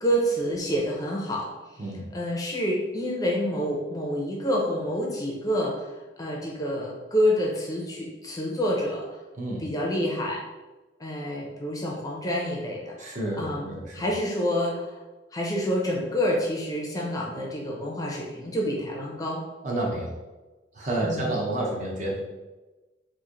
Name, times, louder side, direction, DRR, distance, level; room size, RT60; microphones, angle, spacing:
voice 1, 0.0-1.8 2.1-5.9 6.2-9.1 9.6-10.4 11.0-13.1 13.4-14.9 15.3-19.4 21.0-21.3, equal, 20° left, -2 dB, 0.5 m, -28 dB
voice 2, 13.0-14.1 19.6-20.1 20.7-22.3, right 1 dB, 40° right, -3 dB, 0.7 m, -30 dB
3.1 x 2.5 x 3.7 m, 1.2 s
head